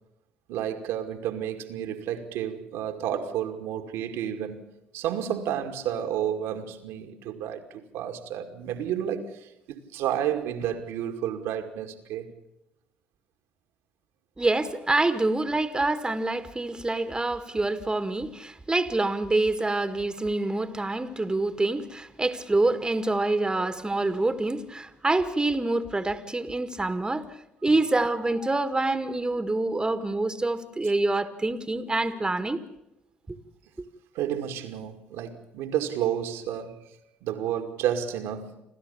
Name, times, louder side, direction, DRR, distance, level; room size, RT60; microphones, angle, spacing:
voice 1, 0.5-4.7 4.9-12.3 34.1-36.8 37.2-38.6, right 10 dB, 75° right, 2.3 m, -31 dB
voice 2, 14.4-27.3 27.6-32.6 33.3-33.4, right 2 dB, 20° right, 1.8 m, -26 dB
28.5 x 13.0 x 7.1 m
hypercardioid pair, 55°, 4 cm